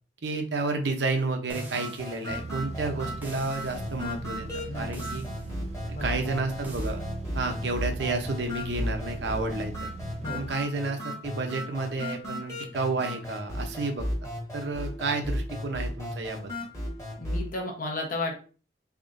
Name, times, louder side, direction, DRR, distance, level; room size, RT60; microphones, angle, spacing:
voice 1, 0.2-4.5 4.7-5.2 5.9-7.0 7.3-9.9 10.3-14.1 14.5-16.5, right 3 dB, 75° right, 4 dB, 0.7 m, -31 dB
sound 1, 1.5-17.5, left 1 dB, 15° left, 1.2 m, -35 dB
sound 2, 1.5-2.3 3.2-3.9 4.9-5.5 6.6-7.0, right 1 dB, 10° right, 0.7 m, -44 dB
sound 3, 2.3-10.5, right 3 dB, 35° right, 0.3 m, -40 dB
voice 2, 4.7-5.1 5.9-6.1 10.2-10.5 17.2-18.4, left 2 dB, 50° left, 0 dB, 0.9 m, -33 dB
3.6 x 3.5 x 2.6 m, 0.37 s
head